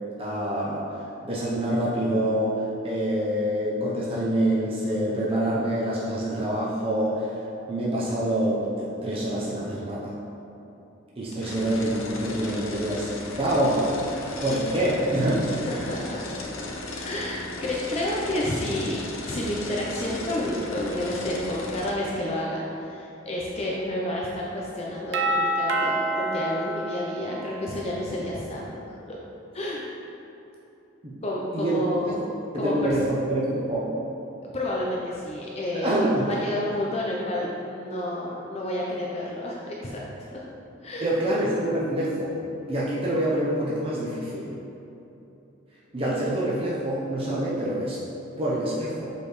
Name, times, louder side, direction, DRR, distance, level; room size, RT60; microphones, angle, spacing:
voice 1, 0.2-0.9 1.2-7.3 7.7-10.1 11.2-13.9 14.4-15.6 31.0-31.2 31.5-32.1 32.5-33.9 35.7-36.3 41.0-42.4 42.7-44.5 45.9-48.0 48.4-49.1, right 1 dB, 30° right, -7 dB, 0.7 m, -26 dB
sound 1, 11.4-21.9, left 2 dB, 85° left, 0.7 m, -36 dB
voice 2, 15.7-16.3 17.0-28.8 29.5-29.9 31.2-32.2 32.6-32.7 34.5-40.0 40.3-40.4 40.8-41.1, left 1 dB, 30° left, -4 dB, 0.6 m, -30 dB
Doorbell, 25.1-28.0, right 1 dB, 70° right, 0.5 m, -27 dB
6.6 x 5.3 x 3.1 m, 3.0 s
head